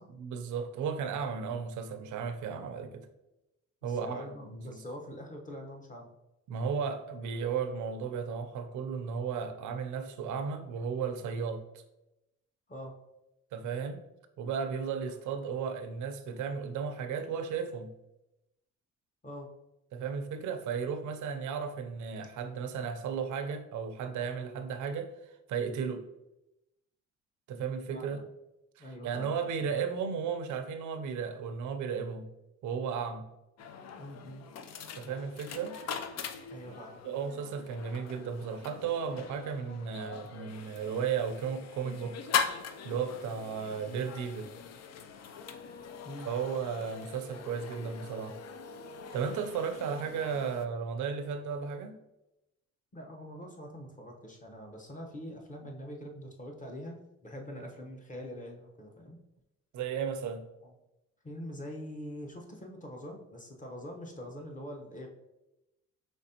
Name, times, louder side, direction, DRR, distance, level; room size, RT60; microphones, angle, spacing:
voice 1, 0.1-3.1 3.8-4.8 6.5-11.6 13.5-14.0 14.4-17.9 19.9-25.1 25.5-26.1 27.5-28.2 28.8-32.3 32.6-33.3 34.9-35.8 37.0-42.2 42.8-44.5 46.3-48.4 49.1-52.0 59.7-60.5, right 6 dB, 75° right, 8 dB, 0.6 m, -34 dB
voice 2, 3.8-6.1 12.7-13.0 19.2-19.5 27.9-28.2 28.8-29.4 34.0-34.4 36.5-37.0 46.0-46.3 49.7-50.0 52.9-59.2 60.6-60.7 61.2-65.1, equal, 25° left, 1 dB, 0.9 m, -44 dB
sound 1, 33.6-50.7, left 6 dB, 60° left, 0.5 m, -41 dB
5.2 x 3.3 x 2.8 m, 0.93 s
cardioid pair, 90°, 30 cm